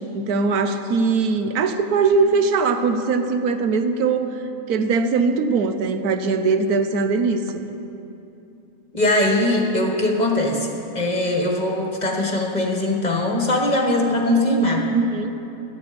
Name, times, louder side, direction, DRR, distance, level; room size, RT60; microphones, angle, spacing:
voice 1, 0.0-4.3 4.7-7.6 14.9-15.3, right 4 dB, 85° right, 8 dB, 1.3 m, -21 dB
voice 2, 8.9-10.7 10.9-14.8, left 1 dB, 30° left, 0 dB, 1.5 m, -21 dB
17.0 x 12.0 x 5.2 m, 2.8 s
omnidirectional pair, 1.6 m